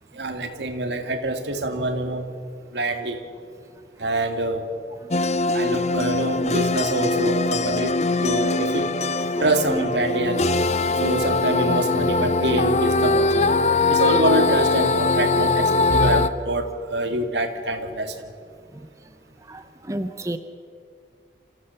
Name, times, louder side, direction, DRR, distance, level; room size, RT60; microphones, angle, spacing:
voice 1, 0.1-2.3 2.7-3.2 4.0-4.6 5.5-8.9 9.4-10.5 11.0-13.5 13.9-18.3, right 2 dB, 85° right, 6 dB, 2.0 m, -25 dB
sound 1, 5.1-16.3, left 3 dB, 40° left, 0.6 m, -21 dB
voice 2, 19.5-20.4, right 1 dB, 20° right, 9 dB, 0.7 m, -31 dB
27.0 x 15.5 x 6.9 m, 2.2 s
head